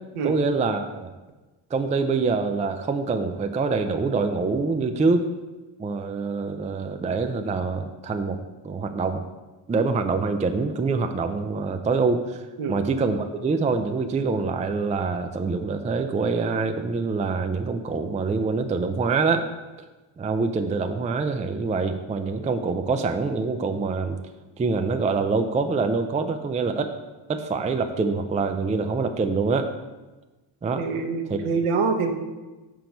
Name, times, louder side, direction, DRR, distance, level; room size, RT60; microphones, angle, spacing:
voice 1, 0.2-1.1 1.7-5.3 5.8-8.4 8.6-9.2 9.7-12.4 12.7-19.5 20.2-24.2 24.6-26.9 27.3-29.7 30.6-30.8 31.3-31.4, right 4 dB, 15° right, 6 dB, 0.4 m, -25 dB
voice 2, 30.8-32.1, right 4 dB, 80° right, 4 dB, 1.0 m, -25 dB
6.1 x 4.6 x 5.2 m, 1.2 s
cardioid pair, 100°, 49 cm